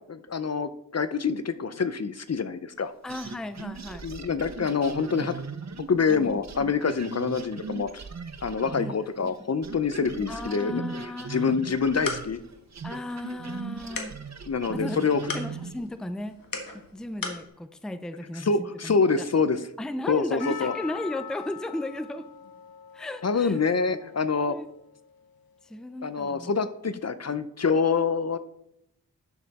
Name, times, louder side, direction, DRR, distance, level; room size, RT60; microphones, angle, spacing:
voice 1, 0.1-2.9 4.0-5.3 5.9-8.0 8.4-10.8 11.3-12.4 14.5-15.2 18.4-19.6 20.1-20.7 23.2-24.5 26.0-28.4, left 5 dB, 45° left, 12 dB, 0.6 m, -26 dB
voice 2, 3.0-4.0 5.2-5.3 6.1-6.4 8.8-9.5 10.3-11.6 12.8-14.1 14.7-15.1 15.3-16.4 16.7-19.3 19.8-22.3 22.9-23.6 24.5-24.7 25.6-26.5, left 1 dB, ahead, 11 dB, 0.5 m, -35 dB
sound 1, 3.1-9.4 9.6-15.9, right 5 dB, 50° right, 0.8 m, -39 dB
sound 2, 11.6-17.5, left 3 dB, 70° left, 1.6 m, -39 dB
Percussion, 20.4-25.3, left 8 dB, 90° left, 0.6 m, -43 dB
11.0 x 6.6 x 4.1 m, 0.78 s
wide cardioid pair, 85°, 35 cm